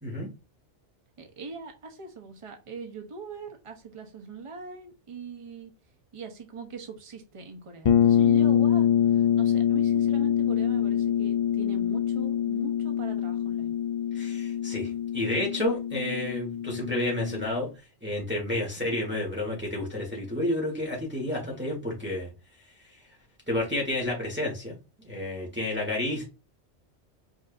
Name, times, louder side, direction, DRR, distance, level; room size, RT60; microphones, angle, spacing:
voice 1, 1.2-5.7 6.1-13.7 18.8-19.0 21.4-21.7, right 4 dB, 30° right, 0.8 m, -41 dB
sound 1, 7.8-17.5, left 9 dB, 80° left, 0.3 m, -25 dB
voice 2, 14.1-17.7 18.0-22.3 23.5-24.7 25.0-26.2, left 1 dB, 10° right, 1.3 m, -30 dB
5.2 x 2.6 x 2.5 m
omnidirectional pair, 1.2 m